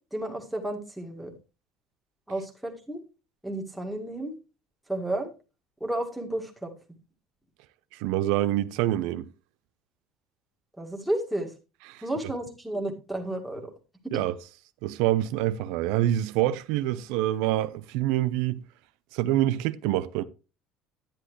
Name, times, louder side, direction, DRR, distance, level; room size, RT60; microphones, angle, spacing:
voice 1, 0.1-1.3 2.3-3.0 3.4-4.4 4.9-5.3 5.8-6.7 10.8-11.5 12.0-13.7 14.1-14.2, right 1 dB, ahead, 1.9 m, -32 dB
voice 2, 7.9-9.3 11.9-12.0 14.1-14.3 14.8-18.6 19.1-20.2, right 14 dB, 80° right, 0.7 m, -26 dB
10.5 x 10.0 x 3.1 m
cardioid pair, 165°, 0 cm